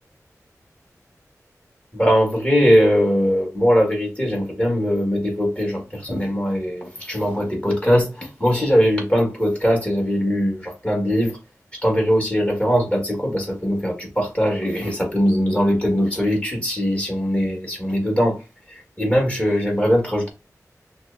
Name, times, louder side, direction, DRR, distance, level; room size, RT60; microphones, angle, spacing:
voice 1, 1.9-11.4 11.7-18.4 18.7-20.3, equal, 20° left, 1.7 m, -20 dB
5.9 x 2.1 x 2.7 m
wide cardioid pair, 90°, 6 cm